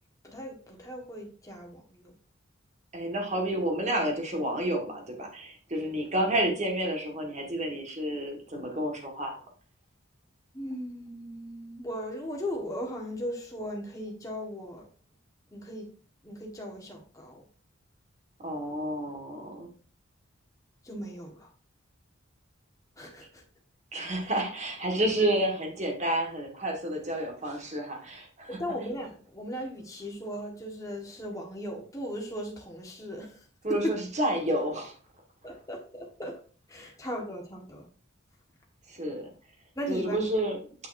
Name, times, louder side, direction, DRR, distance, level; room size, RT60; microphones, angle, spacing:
voice 1, 0.2-2.1 10.5-14.8 15.5-15.9 16.2-17.4 20.8-21.5 23.0-23.4 24.0-24.2 28.5-34.0 35.4-36.4 36.7-37.8 39.7-40.3, equal, 15° left, 1.5 m, -37 dB
voice 2, 2.9-9.3 18.4-19.7 23.9-28.6 33.6-34.9 38.9-39.3 39.9-40.6, right 1 dB, 35° right, 1.7 m, -30 dB
8.7 x 5.6 x 2.6 m
head